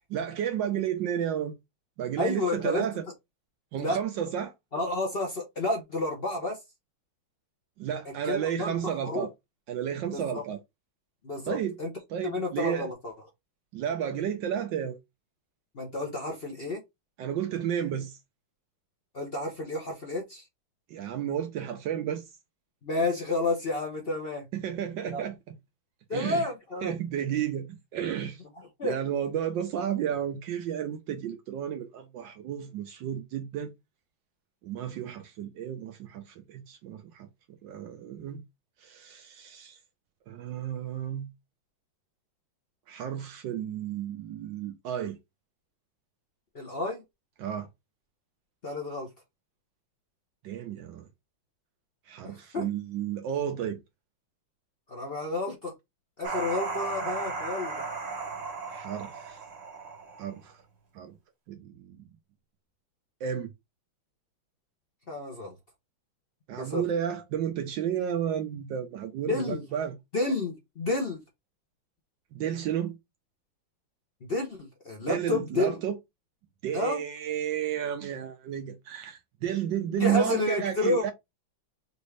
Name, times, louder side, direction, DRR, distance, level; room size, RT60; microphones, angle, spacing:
voice 1, 0.1-1.6 2.0-3.0 3.7-4.5 7.8-9.3 9.7-10.6 11.5-11.7 12.1-12.9 13.7-15.0 17.2-18.2 20.9-22.3 24.5-25.5 26.1-26.5 26.8-28.4 28.8-33.7 34.6-37.3 37.6-38.4 38.8-39.8 40.3-41.3 42.9-45.2 47.4-47.7 50.4-51.1 52.1-53.8 58.7-59.4 60.2-60.6 60.9-61.1 61.5-62.1 63.2-63.5 66.5-70.0 72.3-73.0 75.1-76.0 76.6-81.1, right 9 dB, 75° right, 1.2 m, -32 dB
voice 2, 2.2-2.9 3.8-4.0 4.7-6.6 8.2-9.3 10.1-10.4 11.2-11.9 12.2-13.1 15.7-16.8 19.1-20.4 22.8-24.4 25.1-25.2 26.1-26.9 28.8-29.0 46.5-47.0 48.6-49.1 52.2-52.7 54.9-55.7 56.2-57.8 65.1-65.5 66.6-66.8 69.3-69.6 70.1-71.2 74.2-75.7 76.7-77.0 80.0-81.1, left 2 dB, 50° left, 0.7 m, -30 dB
sound 1, 56.2-60.5, right 4 dB, 50° right, 0.4 m, -35 dB
5.2 x 2.5 x 3.2 m
omnidirectional pair, 2.2 m